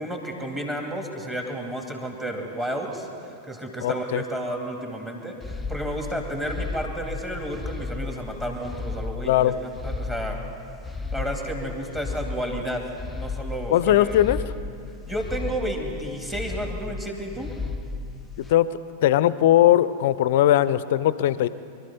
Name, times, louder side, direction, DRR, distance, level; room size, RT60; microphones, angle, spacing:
voice 1, 0.0-10.4 11.1-14.2 15.1-17.5, right 1 dB, 15° right, 1 dB, 2.4 m, -32 dB
voice 2, 3.8-4.2 9.3-9.5 13.7-14.4 18.5-18.7 19.0-21.5, left 12 dB, 55° left, 17 dB, 0.5 m, -19 dB
sound 1, 5.4-18.5, left 3 dB, 10° left, 0.5 m, -34 dB
23.5 x 12.5 x 4.2 m, 2.5 s
figure-of-eight pair, 90°, 0 cm